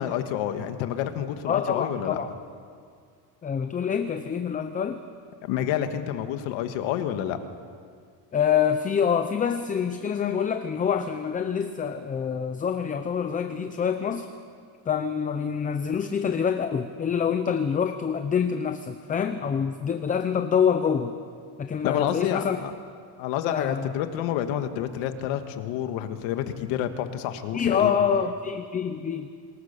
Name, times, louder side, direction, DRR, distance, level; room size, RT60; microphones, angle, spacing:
voice 1, 0.0-2.2 5.4-7.4 21.8-22.7 23.2-28.0, left 10 dB, 85° left, 8 dB, 1.8 m, -29 dB
voice 2, 1.5-2.3 3.4-5.0 8.3-14.3 14.9-21.1 21.6-22.6 23.4-23.9 27.5-29.3, left 7 dB, 20° left, 9 dB, 0.6 m, -26 dB
26.0 x 19.5 x 6.8 m, 2.1 s
cardioid pair, 165°, 44 cm